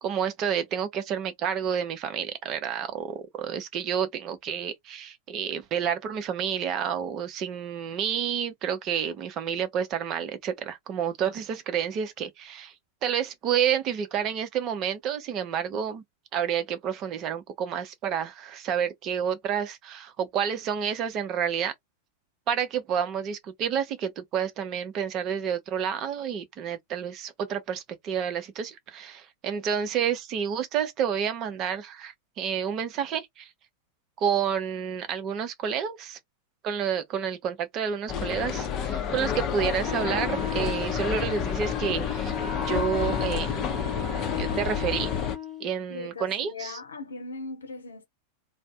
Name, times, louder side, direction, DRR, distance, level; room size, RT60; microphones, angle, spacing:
voice 1, 0.0-12.7 13.0-16.0 16.3-21.7 22.5-33.5 34.2-36.2 36.6-42.3 42.7-43.5 44.3-45.1 45.6-46.7, right 8 dB, 35° right, 0.6 m, -29 dB
sound 1, 38.1-45.4, left 8 dB, 35° left, 0.6 m, -30 dB
Wind instrument woodwind instrument, 39.8-45.7, left 5 dB, 5° right, 1.0 m, -36 dB
voice 2, 45.9-48.1, left 3 dB, 70° left, 0.7 m, -39 dB
2.5 x 2.0 x 3.3 m
figure-of-eight pair, 90°, 0 cm